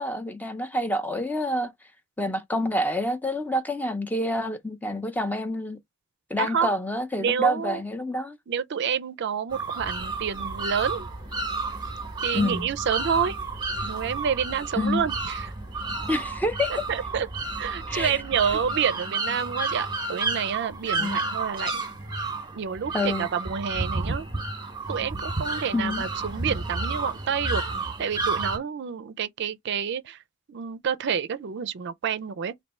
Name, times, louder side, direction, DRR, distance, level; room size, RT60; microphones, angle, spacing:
voice 1, 0.0-1.7 2.2-5.8 6.3-8.4 12.3-12.7 14.8-15.0 16.1-16.7 17.9-18.1 21.0-21.2 22.9-23.3 25.7-26.1, left 1 dB, 10° left, 0.6 m, -27 dB
voice 2, 6.4-6.7 7.2-7.8 8.5-11.1 12.2-13.4 13.8-15.5 16.7-17.3 17.6-21.8 22.5-24.3 24.9-27.6 28.0-30.2 30.5-32.5, right 7 dB, 60° right, 0.4 m, -28 dB
sound 1, 9.5-28.6, right 3 dB, 20° right, 1.0 m, -31 dB
sound 2, 9.8-18.8, equal, 45° left, 1.1 m, -42 dB
3.3 x 2.6 x 4.2 m
head